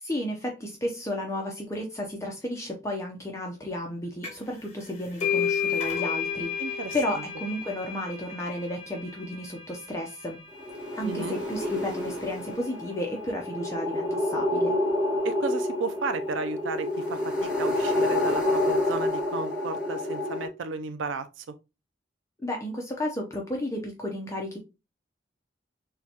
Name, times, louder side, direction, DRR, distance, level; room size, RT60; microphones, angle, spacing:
voice 1, 0.0-10.4 10.9-14.8 22.4-24.6, left 1 dB, 15° left, 0.5 m, -33 dB
sound 1, 4.2-4.5 4.8-12.1, left 7 dB, 35° left, 1.8 m, -33 dB
voice 2, 6.6-7.2 11.0-11.3 15.2-21.5, right 4 dB, 90° right, 0.4 m, -34 dB
sound 2, 10.6-20.5, left 1 dB, 5° right, 1.1 m, -28 dB
6.5 x 2.2 x 2.8 m
head